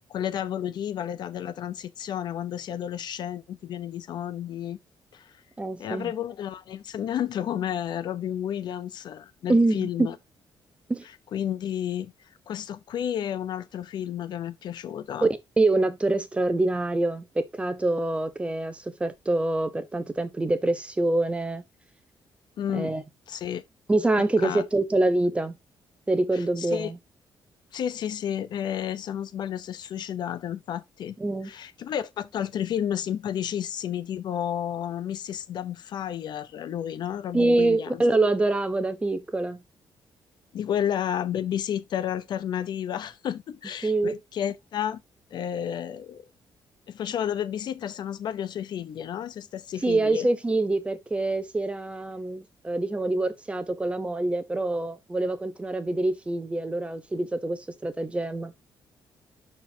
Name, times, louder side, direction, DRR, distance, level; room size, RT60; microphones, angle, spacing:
voice 1, 0.1-4.8 5.1-5.4 5.8-10.2 11.3-12.1 12.5-15.3 22.6-22.9 23.3-23.6 24.4-24.6 26.3-26.9 27.7-31.2 31.4-38.0 40.5-45.0 45.3-46.2 46.9-50.3, left 10 dB, 60° left, 0.7 m, -31 dB
voice 2, 5.6-6.1 9.5-10.1 10.9-11.0 15.2-15.3 15.6-21.6 22.7-23.0 23.9-25.5 26.1-27.0 31.2-31.5 37.3-39.6 43.8-44.1 49.8-58.5, right 2 dB, 15° right, 0.9 m, -25 dB
11.5 x 4.5 x 2.8 m
cardioid pair, 155°, 8 cm